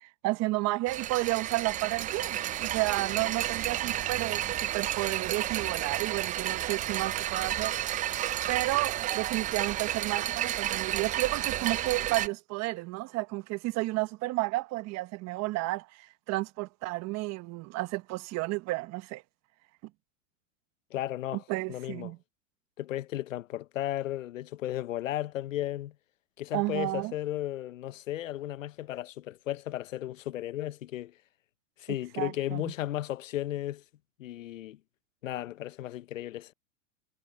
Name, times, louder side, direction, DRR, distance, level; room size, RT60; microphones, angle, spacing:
voice 1, 0.0-7.7 8.5-19.2 21.5-22.2 26.5-27.1 32.2-32.7, right 21 dB, 45° right, 1.2 m, -32 dB
sound 1, 0.9-12.3, right 12 dB, 20° right, 0.4 m, -31 dB
voice 2, 20.9-21.4 21.7-22.1 22.8-25.9 26.4-31.1 31.8-33.8 34.2-34.8 35.2-36.5, left 13 dB, 90° left, 0.9 m, -34 dB
hypercardioid pair, 115°, 38 cm